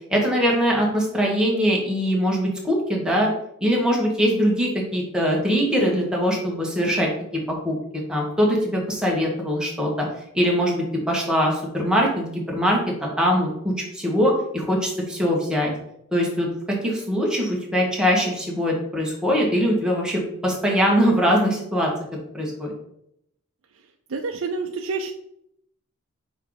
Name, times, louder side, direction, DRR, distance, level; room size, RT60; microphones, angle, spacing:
voice 1, 0.1-3.3 3.6-7.1 7.6-7.7 8.1-10.1 10.3-12.8 13.2-15.7 16.1-21.9 22.3-22.7, equal, 5° right, -3 dB, 1.5 m, -22 dB
voice 2, 24.1-25.1, right 4 dB, 65° right, 3 dB, 0.5 m, -28 dB
5.7 x 4.6 x 3.9 m, 0.76 s
head